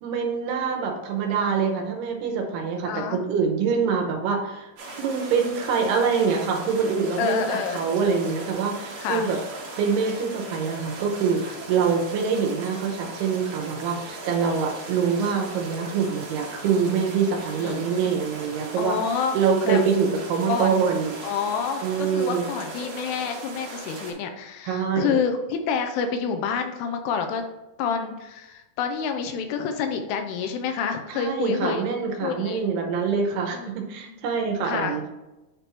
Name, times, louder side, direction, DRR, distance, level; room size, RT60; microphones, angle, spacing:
voice 1, 0.0-4.7 5.0-9.4 9.8-19.0 19.3-21.1 21.8-22.5 24.6-25.2 31.1-35.1, right 6 dB, 80° right, 2 dB, 2.9 m, -25 dB
voice 2, 2.8-3.2 7.2-7.8 9.0-9.3 17.6-18.1 18.8-19.4 19.6-19.8 20.5-20.7 21.2-27.4 27.8-31.9 32.2-32.6 33.5-33.8 34.1-34.2 34.6-35.0, left 6 dB, 85° left, 6 dB, 2.7 m, -28 dB
sound 1, 4.8-24.1, right 2 dB, 60° right, 1.9 m, -38 dB
9.7 x 3.5 x 3.0 m, 1.0 s
omnidirectional pair, 4.7 m